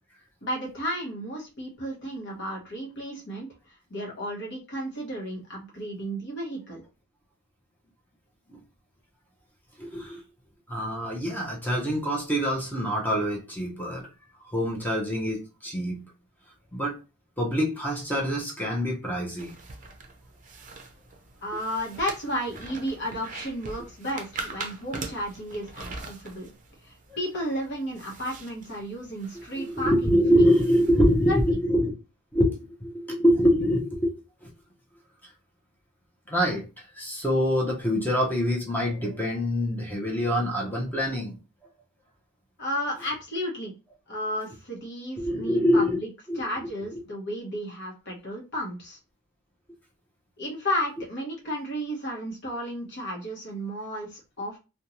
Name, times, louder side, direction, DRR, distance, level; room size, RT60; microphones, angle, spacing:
voice 1, 0.4-6.8 21.4-26.5 26.8-30.4 31.3-31.6 42.6-43.7 44.1-46.1 46.3-49.0 50.4-54.6, equal, 55° left, 1.0 m, -33 dB
voice 2, 9.8-10.2 10.7-14.1 14.4-16.1 16.7-17.0 17.4-19.5 29.3-31.9 32.3-34.1 34.4-34.5 36.3-41.4 45.2-46.0 46.3-46.4 46.9-47.0, equal, 10° left, 0.6 m, -25 dB
sound 1, 19.4-31.5, right 3 dB, 35° right, 0.5 m, -43 dB
2.6 x 2.2 x 2.9 m
head